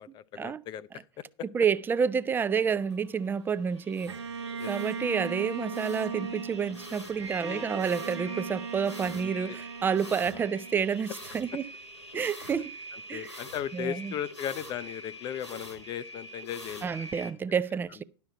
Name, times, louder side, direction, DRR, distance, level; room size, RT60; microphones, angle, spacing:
voice 1, 0.0-1.5 4.6-4.7 7.4-7.7 9.5-9.6 10.3-10.5 12.9-16.9, left 10 dB, 30° left, 0.6 m, -37 dB
voice 2, 1.5-4.1 4.7-11.6 12.1-12.7 13.1-13.3 13.7-14.1 16.8-18.0, right 6 dB, 15° right, 0.4 m, -29 dB
sound 1, 2.5-17.3, equal, 90° left, 1.7 m, -45 dB
Bowed string instrument, 4.1-11.3, right 5 dB, 75° right, 0.8 m, -38 dB
11.5 x 6.2 x 5.6 m
figure-of-eight pair, 90°, 14 cm